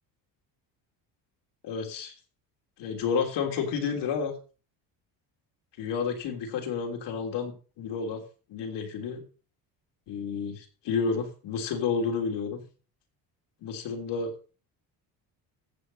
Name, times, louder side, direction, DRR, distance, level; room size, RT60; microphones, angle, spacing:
voice 1, 1.6-2.1 2.8-4.3 5.8-8.2 8.5-9.2 10.1-12.6 13.6-14.3, left 5 dB, 75° left, 2 dB, 3.5 m, -30 dB
14.5 x 7.5 x 4.2 m, 0.36 s
cardioid pair, 120°, 42 cm